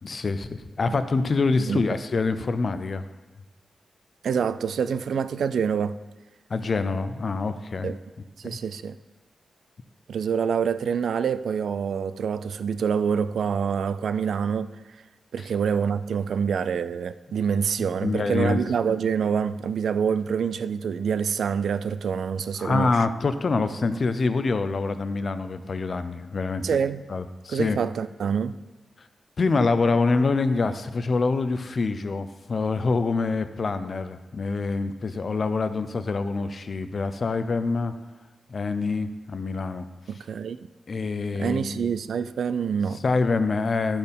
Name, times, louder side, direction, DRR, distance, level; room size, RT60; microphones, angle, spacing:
voice 1, 0.0-3.1 6.5-7.9 8.4-8.6 15.4-15.5 18.0-18.6 22.6-26.7 27.1-27.8 29.4-37.9 38.5-39.9 40.9-41.9 43.0-44.0, left 3 dB, 40° left, 0.5 m, -25 dB
voice 2, 4.2-6.0 7.8-8.0 8.4-9.0 10.1-14.8 15.3-23.0 26.6-27.1 27.5-28.5 40.1-40.6 41.4-43.0, right 7 dB, 75° right, 0.3 m, -26 dB
11.5 x 4.4 x 5.2 m
wide cardioid pair, 160°, 0 cm